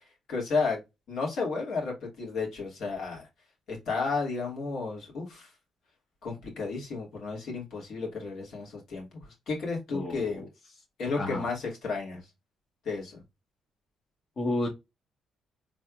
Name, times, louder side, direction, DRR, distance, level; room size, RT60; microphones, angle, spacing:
voice 1, 0.3-0.8 1.1-3.3 3.7-5.5 6.2-10.4 11.0-12.2 12.8-13.2, left 4 dB, 70° left, 2.6 m, -32 dB
voice 2, 9.9-10.4 11.2-11.4 14.4-14.7, left 2 dB, 50° left, 1.6 m, -31 dB
4.1 x 3.5 x 2.5 m
cardioid pair, 90°, 0 cm